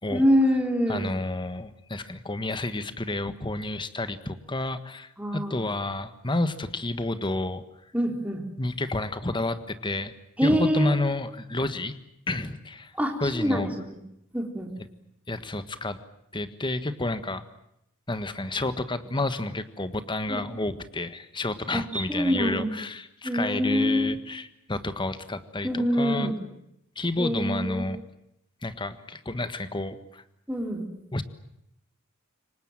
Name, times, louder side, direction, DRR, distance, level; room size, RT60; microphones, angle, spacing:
voice 1, 0.1-1.1 5.2-5.6 7.9-8.4 10.4-11.0 12.9-14.0 14.3-14.7 20.3-20.4 21.7-22.7 23.2-24.2 25.6-26.3 27.2-27.9 30.5-30.8, equal, 5° right, 2 dB, 4.1 m, -25 dB
voice 2, 0.9-7.6 8.6-10.1 10.4-11.9 12.3-12.9 13.2-13.7 15.3-16.0 16.3-17.4 18.1-26.3 26.9-28.0 28.6-30.2 31.1-31.2, left 2 dB, 25° left, 11 dB, 1.5 m, -30 dB
27.5 x 24.0 x 7.6 m, 0.81 s
head